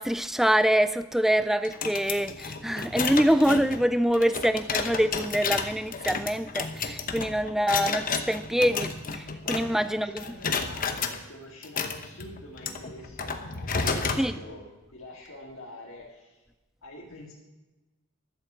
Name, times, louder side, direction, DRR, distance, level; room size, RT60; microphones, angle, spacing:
voice 1, 0.0-10.2 14.2-14.3, equal, ahead, 13 dB, 0.3 m, -25 dB
sound 1, 1.6-9.9 10.2-11.2 11.6-14.3, left 5 dB, 40° left, 0.9 m, -32 dB
voice 2, 9.4-14.6 14.9-16.4 16.8-17.3, left 1 dB, 65° left, -5 dB, 2.3 m, -45 dB
12.5 x 7.5 x 6.9 m, 1.1 s
head